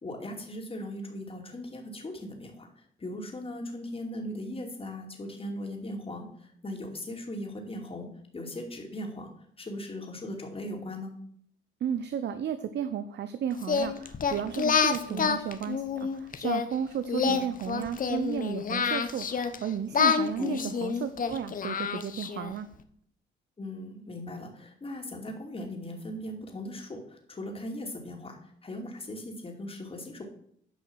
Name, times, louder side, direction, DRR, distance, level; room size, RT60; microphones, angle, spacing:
voice 1, 0.0-9.3 9.6-11.1 15.1-15.3 17.3-17.4 20.4-20.8 23.6-30.2, left 1 dB, 30° left, 2 dB, 2.7 m, -39 dB
voice 2, 11.8-22.7, right 8 dB, 60° right, 11 dB, 0.7 m, -33 dB
Singing, 13.6-16.7 17.1-19.6 19.9-22.5, left 6 dB, 45° left, 1.0 m, -28 dB
9.9 x 5.6 x 6.3 m, 0.65 s
cardioid pair, 90°, 20 cm